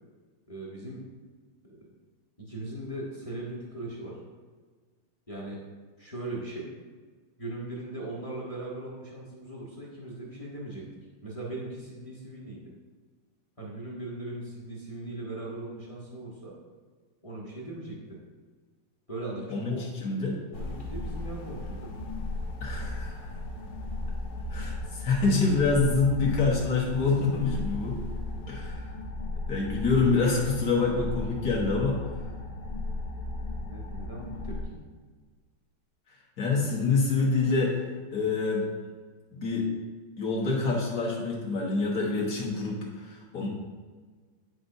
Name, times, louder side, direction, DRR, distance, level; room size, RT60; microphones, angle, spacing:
voice 1, 0.5-1.0 1.6-1.9 2.4-4.2 5.3-5.6 6.0-6.7 7.4-10.8 11.2-12.6 13.6-16.5 17.2-18.2 19.1-19.9 20.5-21.9 33.3-34.8, right 2 dB, 20° left, -5 dB, 1.0 m, -39 dB
voice 2, 19.5-20.4 22.6-23.3 24.5-28.0 28.5-28.9 29.5-32.1 36.4-37.8 38.1-38.7 39.3-39.7 40.2-43.5, left 4 dB, 45° left, -3 dB, 1.6 m, -26 dB
sound 1, 20.5-34.6, left 2 dB, 65° left, 1.0 m, -36 dB
9.3 x 5.2 x 2.6 m, 1.5 s
omnidirectional pair, 2.3 m